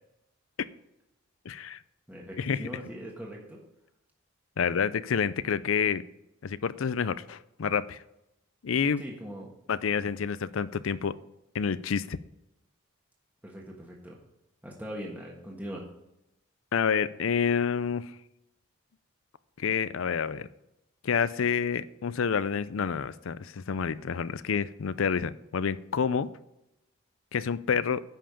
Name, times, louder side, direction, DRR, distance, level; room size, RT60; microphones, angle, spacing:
voice 1, 1.5-1.8 2.4-2.7 4.6-6.0 6.4-8.0 8.6-9.0 9.7-11.2 11.5-12.2 16.7-18.1 19.6-20.5 21.0-26.3 27.3-28.0, left 6 dB, 80° left, 16 dB, 0.5 m, -28 dB
voice 2, 2.1-3.6 9.0-9.5 13.4-14.2 14.6-15.8, equal, 10° right, -2 dB, 1.4 m, -41 dB
10.0 x 5.7 x 6.8 m, 0.87 s
head